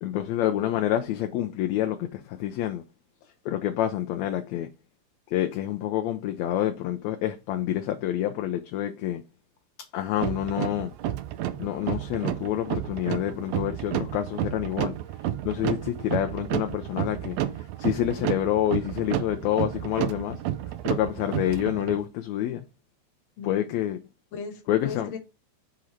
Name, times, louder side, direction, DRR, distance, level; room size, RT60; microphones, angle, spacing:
voice 1, 0.0-2.8 3.4-4.7 5.3-9.2 9.9-10.9 11.6-15.0 15.4-17.4 17.8-20.4 20.8-22.6 23.4-24.0 24.7-25.1, left 12 dB, 80° left, 1.7 m, -27 dB
sound 1, 10.2-22.0, right 12 dB, 75° right, 1.6 m, -31 dB
voice 2, 23.4-23.7 24.3-25.2, left 6 dB, 55° left, 1.7 m, -37 dB
6.3 x 3.8 x 4.3 m
omnidirectional pair, 3.5 m